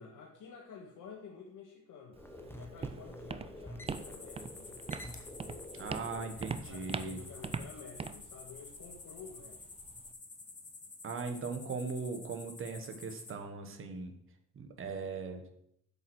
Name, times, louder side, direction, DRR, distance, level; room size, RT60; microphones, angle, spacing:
voice 1, 0.0-4.8 6.5-9.7, left 5 dB, 85° left, -1 dB, 1.8 m, -51 dB
Walk footsteps, 2.1-10.1, right 5 dB, 20° right, 0.4 m, -43 dB
sound 1, 2.2-7.6, left 1 dB, 5° left, 0.9 m, -49 dB
sound 2, 3.9-13.3, left 3 dB, 25° left, 1.5 m, -51 dB
voice 2, 5.7-7.2 11.0-14.1 14.5-15.4, right 4 dB, 45° right, 5 dB, 1.4 m, -39 dB
7.9 x 7.3 x 6.2 m, 0.70 s
wide cardioid pair, 165°, 31 cm